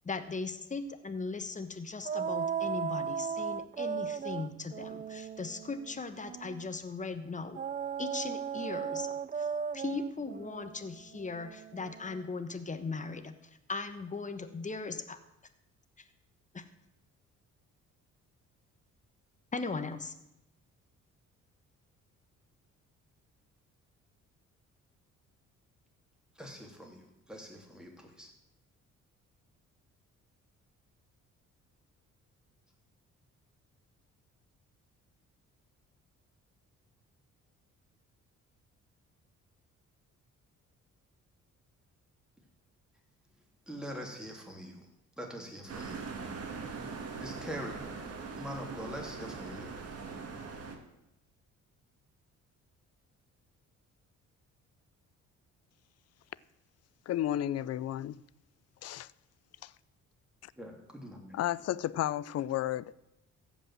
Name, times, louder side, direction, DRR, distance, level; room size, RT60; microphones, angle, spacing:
voice 1, 0.0-7.6 8.0-9.5 9.7-13.4 13.7-15.2 16.0-16.1 16.5-16.6 19.5-20.1, left 4 dB, 25° left, 1.2 m, -38 dB
sound 1, 2.0-6.7 7.5-12.2, right 7 dB, 25° right, 0.4 m, -37 dB
voice 2, 26.4-28.3 43.7-44.8 45.2-46.1 47.2-47.9 48.4-49.7 60.6-61.3, equal, ahead, 3.1 m, -43 dB
sound 2, 45.7-50.8, right 4 dB, 55° right, 2.0 m, -41 dB
voice 3, 57.1-58.2 58.8-59.1 59.6-59.7 60.4-60.5 61.3-62.9, left 12 dB, 55° left, 0.5 m, -32 dB
14.5 x 5.5 x 7.6 m
cardioid pair, 90°, 30 cm